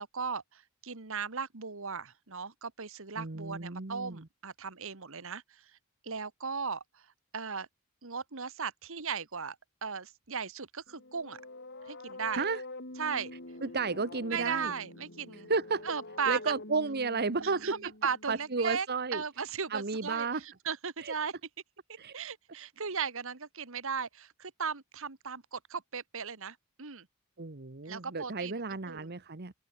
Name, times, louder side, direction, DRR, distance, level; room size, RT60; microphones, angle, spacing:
voice 1, 0.0-5.7 6.0-7.1 7.3-7.7 8.0-9.6 9.8-11.4 11.8-12.4 13.0-13.3 14.3-15.5 15.8-16.5 17.4-18.9 19.1-21.3 22.1-27.1 27.9-28.5 28.9-29.1, right 6 dB, 65° right, 1.8 m, -37 dB
voice 2, 3.2-4.3 12.3-12.6 13.6-14.7 15.5-15.8 16.3-17.7 18.3-19.2 19.7-20.4 21.0-21.1 22.0-22.2 27.4-29.5, right 4 dB, 50° right, 1.3 m, -32 dB
sound 1, 10.9-18.6, left 2 dB, 55° left, 5.5 m, -47 dB
open air
head